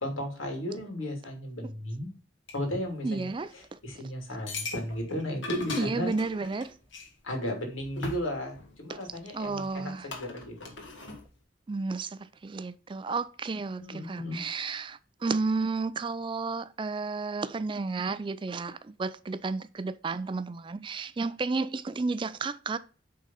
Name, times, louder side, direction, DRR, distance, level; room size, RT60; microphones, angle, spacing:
voice 1, 0.0-2.1 2.5-6.1 7.2-10.7 13.8-14.4, equal, 85° left, 3.0 m, -35 dB
sound 1, 2.5-2.6 4.5-7.1 7.8-9.0 9.6-9.7 10.1-11.3, left 3 dB, 70° left, 2.0 m, -38 dB
voice 2, 3.0-3.5 5.8-6.7 8.9-9.0 9.3-10.1 11.7-22.8, right 4 dB, 25° right, 0.3 m, -32 dB
8.1 x 3.9 x 5.6 m
head